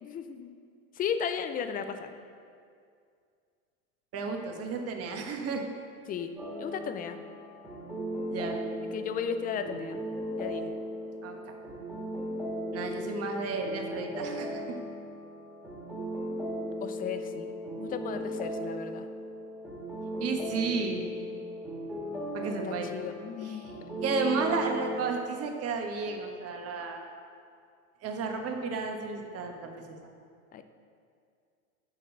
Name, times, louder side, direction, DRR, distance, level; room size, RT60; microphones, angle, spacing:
voice 1, 0.0-0.5 1.0-2.1 6.1-6.3 6.6-7.2 8.9-10.0 10.4-10.8 16.5-19.1 22.6-23.7 30.5-30.6, left 7 dB, 20° left, 9 dB, 0.5 m, -35 dB
voice 2, 4.1-5.7 8.3-8.6 11.2-11.5 12.7-14.8 20.2-21.0 22.3-22.9 23.4-23.6 24.0-27.0 28.0-29.8, right 4 dB, 35° right, 3 dB, 1.3 m, -33 dB
sound 1, 6.4-25.0, equal, 5° right, 2.0 m, -37 dB
7.7 x 6.3 x 6.5 m, 2.3 s
hypercardioid pair, 110°, 43 cm